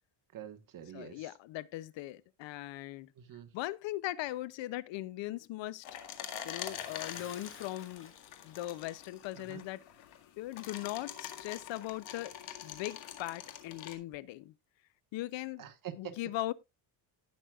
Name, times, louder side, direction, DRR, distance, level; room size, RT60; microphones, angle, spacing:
voice 1, 0.3-1.3 3.2-3.5 9.4-9.6 15.6-16.2, right 10 dB, 45° right, 1.3 m, -46 dB
voice 2, 0.9-3.1 3.5-5.8 6.4-8.1 8.4-9.8 10.4-12.3 12.6-14.5 15.1-15.7 16.0-16.5, left 16 dB, 70° left, 0.6 m, -39 dB
sound 1, 5.8-13.9, left 10 dB, 85° left, 1.9 m, -45 dB
Bathtub (filling or washing) / Splash splatter, 6.5-9.3 9.7-9.8 10.4-10.5, left 5 dB, 25° left, 1.5 m, -54 dB
18.0 x 6.2 x 2.3 m
cardioid pair, 135°, 47 cm